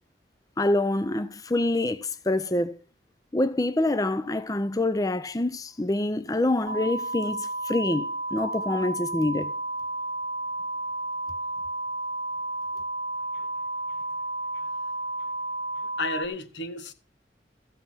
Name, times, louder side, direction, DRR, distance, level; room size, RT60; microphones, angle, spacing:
voice 1, 0.6-2.8 3.3-9.5, left 2 dB, 20° left, 0.5 m, -26 dB
sound 1, 6.7-16.3, right 2 dB, 30° right, 1.1 m, -32 dB
voice 2, 15.8-16.9, left 2 dB, 80° left, 1.6 m, -34 dB
14.5 x 5.7 x 7.3 m
head